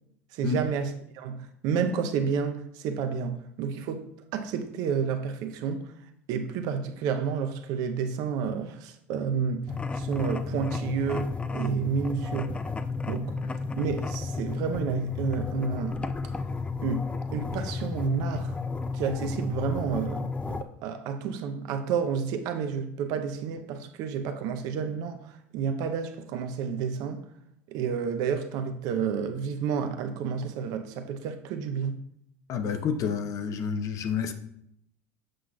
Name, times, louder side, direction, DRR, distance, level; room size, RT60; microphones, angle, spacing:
voice 1, 0.3-5.9 6.3-12.6 13.1-13.4 13.8-16.0 16.8-18.6 18.9-20.2 20.5-27.2 27.7-32.0, right 6 dB, 60° right, 0.7 m, -30 dB
sound 1, 9.7-20.6, left 4 dB, 15° left, 0.4 m, -32 dB
voice 2, 32.5-34.3, left 6 dB, 45° left, 0.8 m, -29 dB
7.6 x 6.0 x 2.3 m
hypercardioid pair, 80°, 8 cm